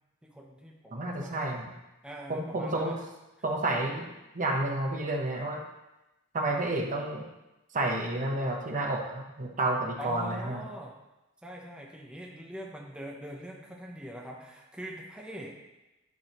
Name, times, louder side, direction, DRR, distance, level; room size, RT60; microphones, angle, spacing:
voice 1, 0.2-1.5 2.0-3.0 10.0-10.9 11.4-15.6, equal, 5° right, -2 dB, 0.8 m, -43 dB
voice 2, 0.9-1.7 2.3-3.0 3.4-4.1 4.3-5.6 6.3-7.2 7.7-10.6, right 2 dB, 35° right, 1 dB, 1.0 m, -30 dB
10.5 x 6.3 x 3.0 m, 1.0 s
head